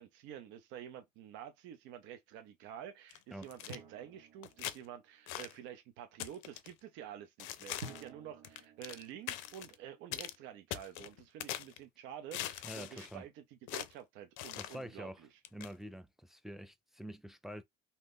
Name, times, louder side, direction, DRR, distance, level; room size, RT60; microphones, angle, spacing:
voice 1, 0.0-15.3, right 10 dB, 60° right, 0.7 m, -49 dB
sound 1, 3.1-3.8 4.4-4.8 5.3-5.6 6.2-6.7 7.4-8.1 8.4-9.0 9.3-9.7 10.1-10.4 10.7-11.8 12.3-13.1 13.7-13.9 14.4-14.8 15.4-15.7, left 13 dB, 70° left, 0.5 m, -42 dB
Drum, 3.7-5.2 7.8-10.0, right 3 dB, 90° right, 1.3 m, -52 dB
voice 2, 12.6-13.3 14.6-15.2 15.5-17.6, equal, ahead, 0.4 m, -46 dB
2.7 x 2.4 x 3.5 m
supercardioid pair, 100°, 21 cm